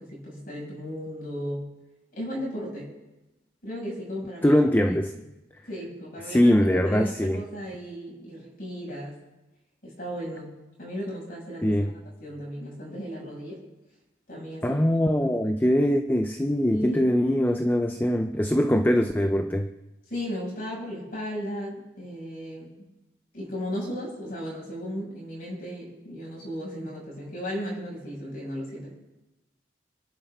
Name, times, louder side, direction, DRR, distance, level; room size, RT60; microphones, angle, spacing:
voice 1, 0.0-1.7 2.1-2.9 3.6-4.6 5.1-5.2 5.7-9.2 9.8-11.9 12.2-13.6 14.3-14.9 16.7-17.1 20.1-22.7 23.3-28.9, equal, 55° left, -4 dB, 7.8 m, -35 dB
voice 2, 4.4-5.1 6.3-7.4 11.6-11.9 14.6-19.7, equal, 10° left, 6 dB, 0.6 m, -22 dB
28.0 x 11.0 x 4.1 m, 1.0 s
head